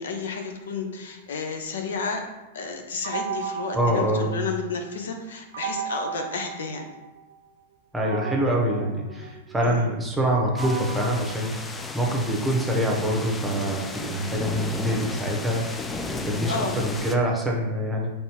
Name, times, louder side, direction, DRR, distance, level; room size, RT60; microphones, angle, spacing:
voice 1, 0.0-2.2 2.5-6.9 9.6-9.8 16.5-16.8, left 4 dB, 75° left, 4 dB, 0.6 m, -31 dB
sound 1, 3.0-4.9 5.5-7.3 8.0-12.3, right 7 dB, 70° right, 0.6 m, -36 dB
voice 2, 3.7-4.3 7.9-15.8 16.1-18.1, right 1 dB, 10° right, -1 dB, 0.8 m, -25 dB
sound 2, 10.6-17.2, left 3 dB, 15° left, 0.3 m, -34 dB
4.3 x 3.3 x 2.8 m, 1.0 s
hypercardioid pair, 110°, 0 cm